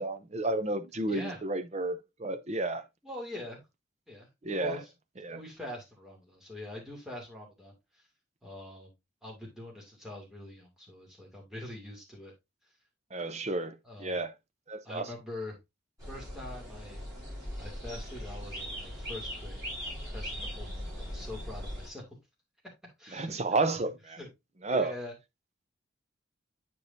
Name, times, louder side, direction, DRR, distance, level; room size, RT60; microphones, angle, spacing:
voice 1, 0.0-2.8 4.4-4.8 5.2-5.4 13.1-13.7 14.0-14.3 14.7-15.0 23.1-24.2 24.6-24.9, right 2 dB, 35° right, 0.6 m, -31 dB
voice 2, 1.1-1.4 3.0-3.6 4.1-4.9 5.3-8.0 8.4-8.9 9.2-12.3 13.8-14.2 14.8-15.6 16.1-17.0 17.6-19.7 20.1-22.0 23.0-23.3 24.2-24.3 24.7-25.1, left 1 dB, ahead, 2.5 m, -43 dB
sound 1, 16.0-21.9, equal, 20° right, 4.6 m, -39 dB
8.6 x 4.9 x 2.7 m
head